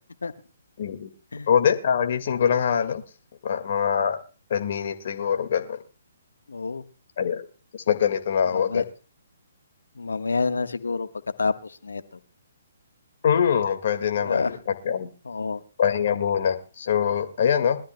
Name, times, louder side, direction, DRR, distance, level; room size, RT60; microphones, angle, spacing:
voice 1, 0.8-1.1 1.5-3.0 3.4-4.2 4.5-5.8 7.2-7.4 7.9-8.8 13.2-15.1 15.8-17.8, left 8 dB, 55° left, 1.8 m, -23 dB
voice 2, 6.5-6.8 8.5-8.8 9.9-11.1 11.4-12.2 14.2-14.6 15.2-15.6, left 4 dB, 85° left, 1.3 m, -28 dB
22.5 x 13.0 x 2.2 m
hypercardioid pair, 140°, 0 cm